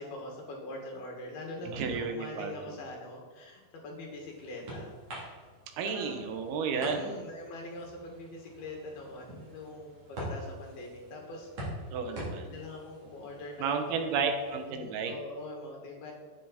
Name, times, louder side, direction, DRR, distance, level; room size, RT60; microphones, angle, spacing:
voice 1, 0.0-4.9 5.8-6.3 6.7-11.5 12.1-13.8 14.7-16.1, left 2 dB, 80° left, 0 dB, 4.0 m, -43 dB
voice 2, 1.6-2.5 5.8-7.1 11.9-12.5 13.6-15.1, right 5 dB, 85° right, 5 dB, 3.1 m, -32 dB
sound 1, 3.6-14.7, equal, 40° right, 4.4 m, -45 dB
10.0 x 9.2 x 4.3 m, 1.5 s
omnidirectional pair, 4.3 m